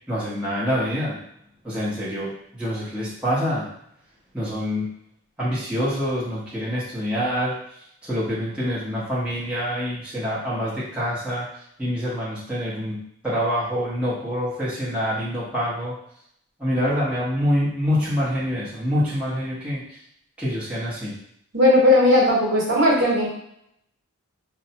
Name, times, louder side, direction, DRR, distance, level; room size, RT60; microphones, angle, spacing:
voice 1, 0.1-1.2 1.6-3.7 4.3-4.9 5.4-7.6 8.0-11.5 11.8-13.0 13.2-16.0 16.6-20.0 20.4-21.1, equal, 5° right, -9 dB, 0.9 m, -26 dB
voice 2, 21.5-23.3, left 1 dB, 55° right, -4 dB, 1.1 m, -17 dB
4.6 x 2.1 x 2.8 m, 0.70 s
head